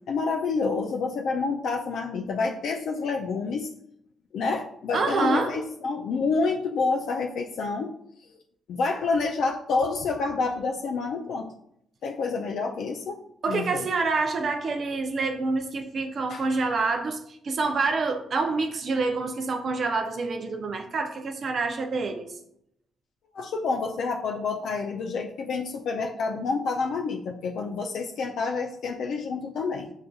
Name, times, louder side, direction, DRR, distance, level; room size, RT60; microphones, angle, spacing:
voice 1, 0.1-3.7 4.3-7.9 8.7-11.5 12.0-13.2 13.5-13.9 16.3-16.4 23.3-29.9, left 4 dB, 70° left, 2 dB, 0.3 m, -28 dB
voice 2, 4.9-5.5 13.4-22.3, right 3 dB, 50° right, 4 dB, 0.4 m, -27 dB
6.3 x 2.5 x 2.3 m, 0.73 s
cardioid pair, 90°, 0 cm